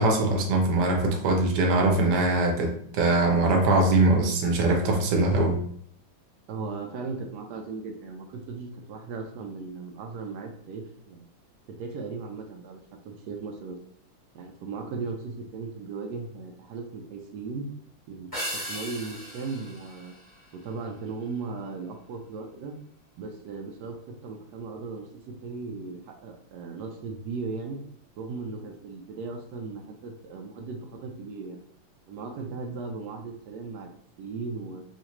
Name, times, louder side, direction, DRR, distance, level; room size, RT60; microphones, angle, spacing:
voice 1, 0.0-5.6, right 2 dB, 65° right, 2 dB, 1.1 m, -22 dB
voice 2, 6.5-11.2 11.7-12.8 13.0-13.8 14.3-17.6 18.1-20.1 20.5-22.7 23.2-27.8 28.2-31.6 32.1-33.9 34.2-34.8, right 4 dB, 85° right, 2 dB, 0.9 m, -37 dB
sound 1, 18.3-21.0, equal, 10° left, 1.1 m, -37 dB
3.9 x 2.5 x 2.9 m, 0.64 s
omnidirectional pair, 2.3 m